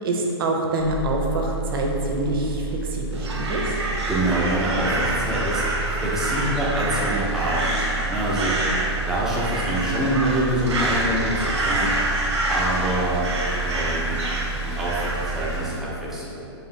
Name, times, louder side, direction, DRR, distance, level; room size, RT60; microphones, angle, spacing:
voice 1, 0.0-2.6 2.9-3.6, right 2 dB, 55° right, 1 dB, 0.6 m, -25 dB
sound 1, 0.8-15.6, right 4 dB, 55° left, 0.6 m, -31 dB
Crow, 3.1-15.8, right 1 dB, 90° right, 0.9 m, -27 dB
voice 2, 4.1-5.6 6.0-7.8 8.0-8.6 9.1-11.9 12.5-13.3 13.6-14.2 14.6-16.4, right 1 dB, 5° right, -7 dB, 0.4 m, -26 dB
sound 2, 4.7-10.4, equal, 85° left, 1.4 m, -40 dB
4.6 x 2.5 x 3.1 m, 2.8 s
hypercardioid pair, 155°, 14 cm